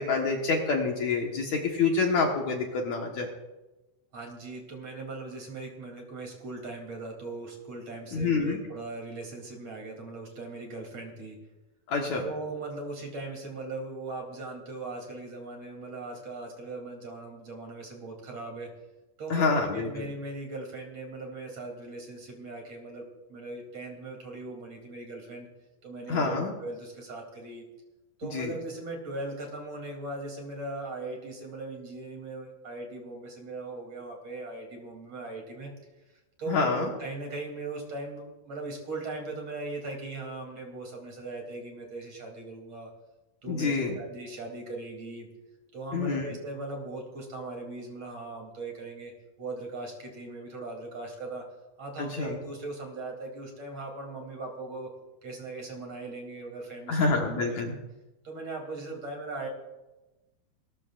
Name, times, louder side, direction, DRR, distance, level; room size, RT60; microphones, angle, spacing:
voice 1, 0.0-3.3 8.1-8.6 11.9-12.2 19.3-20.1 26.1-26.5 28.3-28.5 36.5-36.9 43.5-44.0 45.9-46.2 52.0-52.4 56.9-57.7, left 4 dB, 60° left, 0 dB, 2.4 m, -27 dB
voice 2, 4.1-11.4 12.2-18.7 19.2-25.5 25.8-27.6 28.2-35.7 36.4-42.9 43.4-45.3 45.7-49.1 49.4-51.4 51.8-54.9 55.2-57.6 58.2-59.5, right 2 dB, 45° right, 1 dB, 4.0 m, -39 dB
27.5 x 14.0 x 2.6 m, 1.1 s
omnidirectional pair, 4.2 m